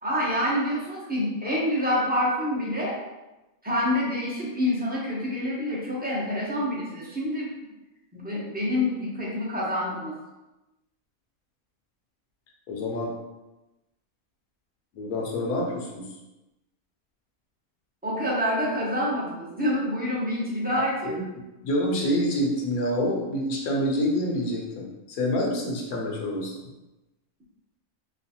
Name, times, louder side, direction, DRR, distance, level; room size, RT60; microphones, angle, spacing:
voice 1, 0.0-3.0 3.6-7.5 8.1-10.1 18.0-21.2, left 1 dB, 10° right, -7 dB, 0.4 m, -27 dB
voice 2, 12.7-13.1 14.9-16.0 21.0-21.2 21.6-26.5, left 1 dB, 75° left, -1 dB, 1.2 m, -27 dB
3.1 x 3.0 x 2.8 m, 1.0 s
omnidirectional pair, 1.6 m